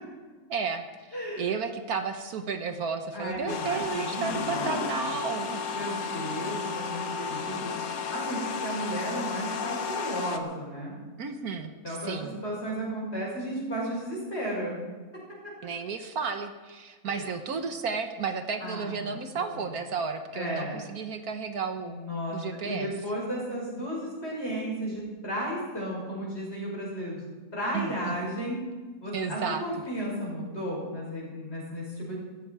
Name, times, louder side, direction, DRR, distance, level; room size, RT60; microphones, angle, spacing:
voice 1, 0.5-5.7 11.2-12.3 15.6-22.0 22.3-22.9 27.7-27.9 29.1-29.6, right 5 dB, 70° right, 7 dB, 1.5 m, -33 dB
voice 2, 1.1-1.4 3.1-5.2 5.7-7.7 8.1-11.0 11.8-14.8 17.0-17.3 18.6-19.7 20.3-20.8 21.8-27.3 27.5-28.6 29.0-32.1, equal, 40° left, -3 dB, 6.3 m, -34 dB
sound 1, 3.5-10.4, left 5 dB, 65° left, 1.5 m, -33 dB
15.5 x 15.0 x 4.8 m, 1.4 s
omnidirectional pair, 1.7 m